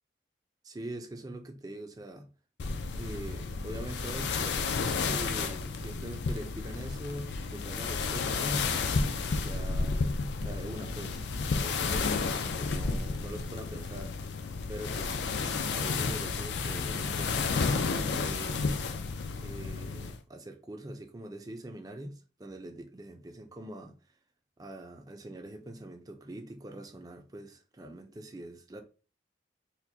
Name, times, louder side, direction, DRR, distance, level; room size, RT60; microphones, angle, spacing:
voice 1, 0.6-2.3 2.9-8.7 9.3-10.1 10.4-11.2 11.5-14.1 14.7-15.4 15.7-18.7 19.4-23.9 24.6-28.8, right 1 dB, 20° right, 0.5 m, -43 dB
sound 1, 2.6-20.2, left 4 dB, 75° left, 0.5 m, -32 dB
4.3 x 2.2 x 2.7 m
head